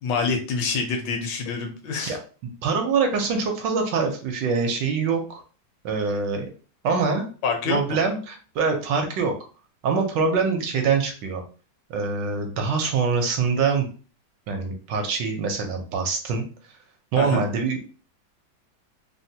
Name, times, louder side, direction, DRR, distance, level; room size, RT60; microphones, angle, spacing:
voice 1, 0.0-2.2 7.4-8.0 17.2-17.4, left 5 dB, 75° left, 4 dB, 1.2 m, -26 dB
voice 2, 2.6-5.4 5.8-6.5 6.8-7.3 7.7-9.3 9.8-11.4 11.9-13.9 14.5-16.4 17.1-17.8, right 5 dB, 75° right, 4 dB, 1.2 m, -24 dB
3.4 x 2.2 x 2.7 m, 0.37 s
omnidirectional pair, 2.1 m